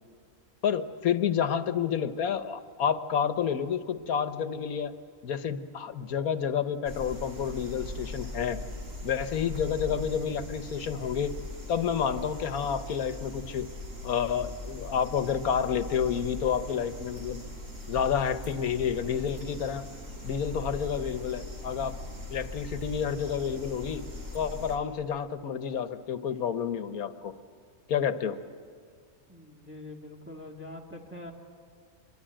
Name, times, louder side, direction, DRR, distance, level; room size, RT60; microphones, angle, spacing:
voice 1, 0.6-4.9 5.2-8.6 9.0-11.4 11.7-13.7 14.0-17.5 17.9-19.8 20.2-21.9 22.3-24.1 24.3-27.3 27.9-28.4, left 7 dB, 85° left, 11 dB, 1.5 m, -29 dB
sound 1, 6.8-24.8, left 1 dB, 45° right, 3.9 m, -40 dB
voice 2, 29.3-31.3, left 1 dB, 10° right, -1 dB, 2.0 m, -44 dB
24.5 x 23.0 x 9.0 m, 2.1 s
omnidirectional pair, 1.5 m